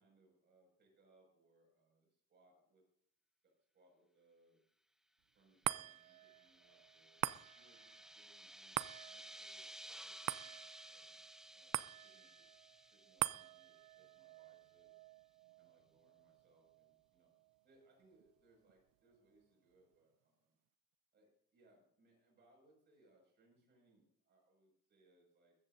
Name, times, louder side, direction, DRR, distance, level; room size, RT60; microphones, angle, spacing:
voice 1, 0.0-2.8 3.4-4.6 5.3-7.2 7.5-11.2 11.5-12.5 12.9-15.1 15.6-17.3 17.6-20.6 21.1-25.5, right 2 dB, 35° right, 0 dB, 5.9 m, -72 dB
sound 1, 5.6-18.2 18.7-18.8, right 17 dB, 85° right, 0.5 m, -46 dB
sound 2, 5.8-14.1, right 1 dB, ahead, 0.5 m, -56 dB
22.5 x 14.0 x 2.6 m, 0.68 s
cardioid pair, 175°, 31 cm